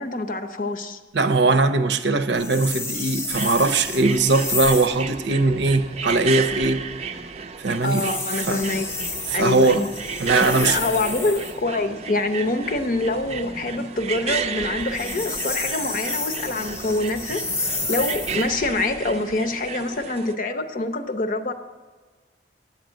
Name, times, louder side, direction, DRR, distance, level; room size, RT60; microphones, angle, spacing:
voice 1, 0.0-1.0 7.8-8.9 9.3-9.9 10.4-21.5, left 2 dB, 50° left, 7 dB, 0.7 m, -25 dB
voice 2, 1.1-6.8 7.6-8.1 8.5-8.7 9.3-9.8 10.2-10.8, right 3 dB, 75° right, 11 dB, 0.7 m, -20 dB
sound 1, 2.3-5.0 7.8-11.6 14.8-18.5, left 3 dB, 15° left, 0.5 m, -30 dB
sound 2, 3.3-20.3, right 5 dB, 35° right, 0.5 m, -33 dB
9.5 x 8.1 x 6.3 m, 1.4 s
head